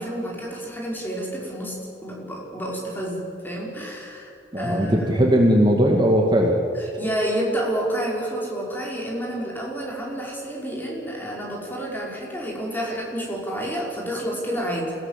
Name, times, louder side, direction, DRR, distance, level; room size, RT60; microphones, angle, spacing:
voice 1, 0.0-1.8 2.0-5.3 6.7-15.1, right 1 dB, 10° left, -3 dB, 5.5 m, -29 dB
voice 2, 4.5-6.6, equal, 25° right, 0 dB, 2.3 m, -18 dB
28.0 x 17.5 x 7.6 m, 2.4 s
head